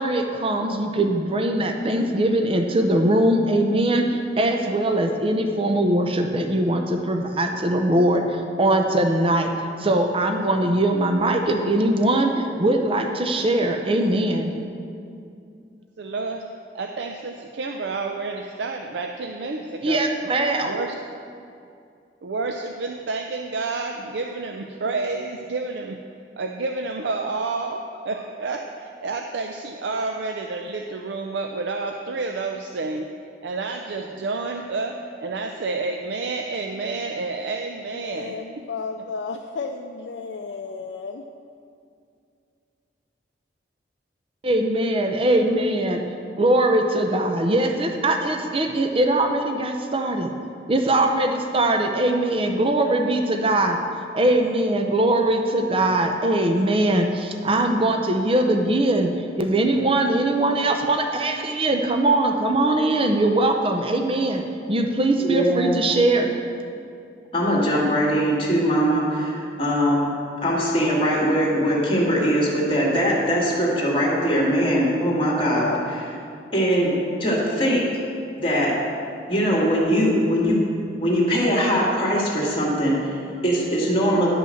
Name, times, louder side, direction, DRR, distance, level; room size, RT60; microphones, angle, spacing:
voice 1, 0.0-9.5 9.8-14.5 19.8-20.8 44.4-46.0 46.4-50.3 50.7-53.8 54.1-59.1 59.4-64.4 64.7-66.3, right 1 dB, 30° right, 4 dB, 0.6 m, -21 dB
voice 2, 16.0-16.4 16.7-20.0 20.6-20.9 22.2-26.0 26.4-33.1 33.4-38.4, right 3 dB, 75° right, 3 dB, 0.5 m, -29 dB
voice 3, 37.9-41.2 75.5-75.8, left 4 dB, 75° left, 3 dB, 0.4 m, -32 dB
voice 4, 65.2-65.8 67.3-70.1 70.4-75.7 76.5-76.9 77.2-77.9 78.4-78.8 79.3-80.6 81.0-84.3, equal, 30° left, -3 dB, 2.0 m, -21 dB
10.5 x 5.4 x 6.4 m, 2.4 s
head